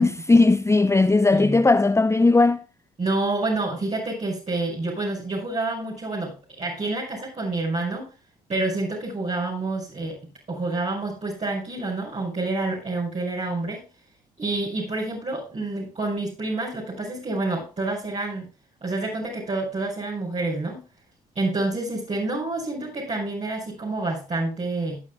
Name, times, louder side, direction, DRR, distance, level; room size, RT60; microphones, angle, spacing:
voice 1, 0.0-2.6, left 3 dB, 15° left, 0.7 m, -18 dB
voice 2, 3.0-8.1 8.5-10.2 10.5-13.8 14.4-18.5 18.8-20.8 21.4-25.0, right 2 dB, 40° right, 5.6 m, -28 dB
18.0 x 9.0 x 2.3 m
supercardioid pair, 55°, 17 cm